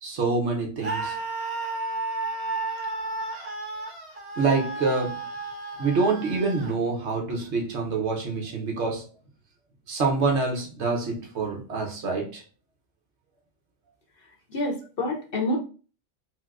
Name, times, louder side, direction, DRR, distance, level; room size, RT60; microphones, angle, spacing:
voice 1, 0.0-1.2 4.4-5.2 5.8-9.1 9.9-12.4, right 4 dB, 65° right, 1.1 m, -26 dB
Screaming, 0.8-6.7, right 3 dB, 50° right, 1.8 m, -33 dB
voice 2, 14.5-15.6, left 1 dB, 50° left, 0.9 m, -27 dB
4.3 x 2.1 x 2.3 m
omnidirectional pair, 1.3 m